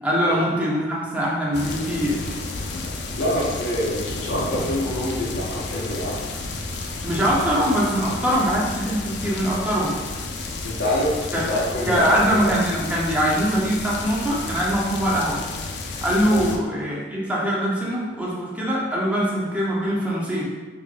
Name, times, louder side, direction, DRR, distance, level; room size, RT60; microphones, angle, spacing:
voice 1, 0.0-2.2 7.0-9.9 11.3-11.4 11.9-15.4 16.0-20.4, equal, 10° right, -6 dB, 0.7 m, -22 dB
sound 1, 1.5-16.6, left 3 dB, 65° left, 0.4 m, -32 dB
voice 2, 3.2-6.2 10.6-12.5 16.3-16.4, equal, 80° left, -8 dB, 0.8 m, -26 dB
4.5 x 2.5 x 2.5 m, 1.3 s
head